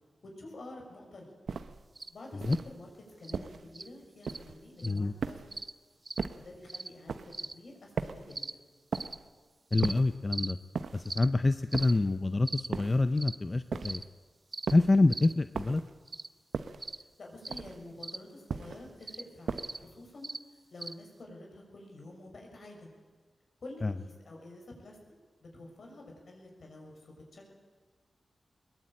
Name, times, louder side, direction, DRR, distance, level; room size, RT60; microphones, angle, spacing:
voice 1, 0.4-1.3 2.1-2.9 3.2-5.4 6.3-7.2 7.5-8.6 15.1-15.3 17.2-20.3 20.7-22.9 23.6-25.0 25.4-27.5, left 2 dB, 65° left, 1 dB, 6.4 m, -49 dB
sound 1, 1.5-1.9 2.4-2.8 3.3-3.7 4.3-4.7 5.2-5.6 6.2-6.5 7.1-7.4 8.0-8.4 8.9-9.3 9.8-10.2 10.7-11.2 11.7-12.2 12.7-13.1 13.7-14.1 14.7-15.0 15.5-16.0 16.5-16.9 17.5-17.9 18.5-18.9 19.5-19.9, right 5 dB, 80° right, 1.0 m, -37 dB
sound 2, 2.0-2.1 2.5-2.6 3.2-3.4 3.7-3.9 4.2-4.4 4.8-5.0 5.5-5.7 6.1-6.2 6.7-6.9 7.3-7.5 8.3-8.5 8.9-9.1 9.7-9.9 10.3-10.5 11.1-11.3 11.7-11.9 12.5-12.7 13.2-13.4 13.8-14.0 14.5-14.7 15.1-15.3 16.1-16.3 16.8-17.0 17.4-17.6 18.0-18.2 19.0-19.2 19.6-19.8 20.2-20.4 20.8-20.9, right 2 dB, 30° right, 0.7 m, -39 dB
voice 2, 4.8-5.1 9.7-10.6 10.9-14.0 14.7-15.8 23.8-23.9, left 2 dB, 30° left, 11 dB, 0.6 m, -26 dB
21.5 x 20.5 x 8.9 m, 1.4 s
wide cardioid pair, 95°, 0 cm